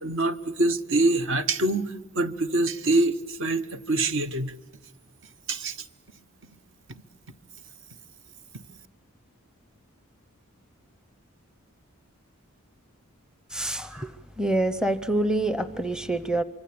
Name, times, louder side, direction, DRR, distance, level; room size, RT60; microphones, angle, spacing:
voice 1, 0.0-4.6 5.5-5.8, right 2 dB, 55° right, 11 dB, 1.1 m, -25 dB
voice 2, 13.5-14.1 14.4-16.4, right 1 dB, 5° right, 13 dB, 0.7 m, -26 dB
25.0 x 24.5 x 8.7 m, 1.3 s
head